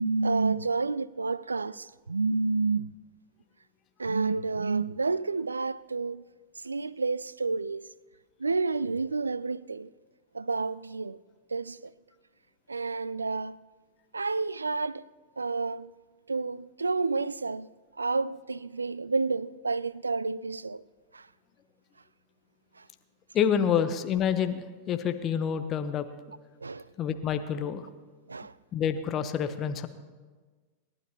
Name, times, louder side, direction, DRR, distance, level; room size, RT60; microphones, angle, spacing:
voice 1, 0.0-2.8 4.0-6.2 6.6-7.9 8.4-9.9 10.3-11.2 11.5-11.9 12.7-13.6 14.1-15.0 15.4-15.9 16.3-17.7 18.0-20.8 21.1-21.3 26.6-26.9 28.3-28.5, right 4 dB, 80° right, 0.3 m, -29 dB
voice 2, 23.3-26.1 27.0-27.9 28.7-29.9, left 8 dB, 30° left, 0.9 m, -28 dB
28.5 x 12.0 x 2.9 m
figure-of-eight pair, 90°, 0 cm